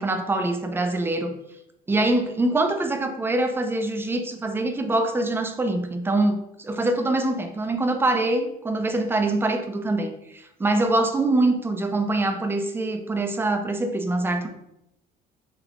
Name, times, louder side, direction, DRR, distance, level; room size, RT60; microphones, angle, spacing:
voice 1, 0.0-1.3 1.9-14.5, right 2 dB, 15° right, 6 dB, 0.4 m, -24 dB
3.2 x 2.9 x 2.4 m, 0.82 s
cardioid pair, 110°, 17 cm